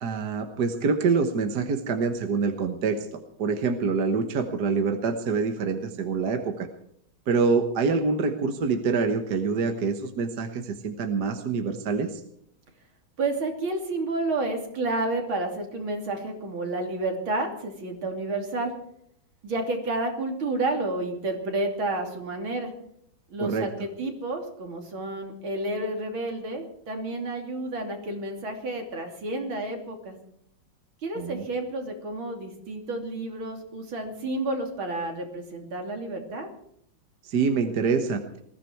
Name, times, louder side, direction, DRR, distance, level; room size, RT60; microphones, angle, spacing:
voice 1, 0.0-6.7 7.3-12.2 23.4-23.7 31.1-31.4 37.2-38.2, right 4 dB, 55° right, 6 dB, 1.7 m, -26 dB
voice 2, 13.2-18.7 19.4-22.7 23.3-30.2 31.0-36.5, right 2 dB, 70° right, 3 dB, 3.6 m, -30 dB
21.0 x 14.5 x 4.6 m, 0.70 s
omnidirectional pair, 2.3 m